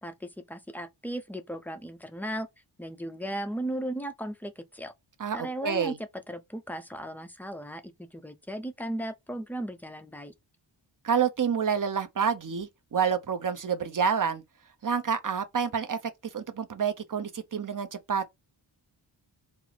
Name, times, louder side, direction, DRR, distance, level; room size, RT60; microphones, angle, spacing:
voice 1, 0.0-2.5 2.8-4.9 5.3-5.9 6.3-10.3, right 1 dB, 5° left, 0.5 m, -36 dB
voice 2, 5.2-6.0 11.0-14.4 14.8-16.0 16.3-18.2, right 7 dB, 40° right, 0.8 m, -28 dB
4.4 x 2.0 x 4.0 m
wide cardioid pair, 105°, 48 cm